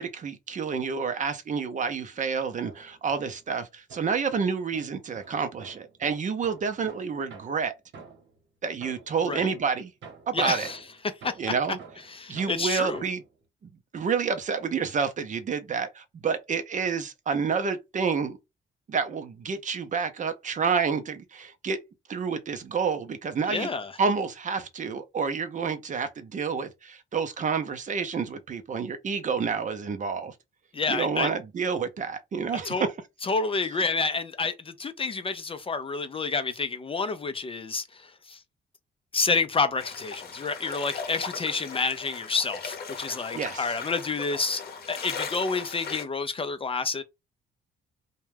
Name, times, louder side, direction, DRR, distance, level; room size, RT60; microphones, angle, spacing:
voice 1, 0.0-7.7 8.6-9.9 10.3-10.7 11.4-11.8 12.3-13.2 13.9-18.4 18.9-21.8 22.1-23.7 24.0-30.3 30.9-32.9 43.3-43.7, right 5 dB, 40° right, 0.5 m, -29 dB
sound 1, 2.6-3.5 3.9-8.4 8.8-13.3, right 4 dB, 65° right, 1.0 m, -49 dB
voice 2, 10.3-10.8 11.2-11.5 12.1-13.0 23.5-23.9 30.7-31.3 32.6-32.8 33.2-38.4 39.1-44.6 44.9-47.0, left 4 dB, 30° left, 0.4 m, -29 dB
sound 2, 39.8-46.0, left 5 dB, 50° left, 0.8 m, -38 dB
2.3 x 2.1 x 3.2 m
cardioid pair, 90°, 20 cm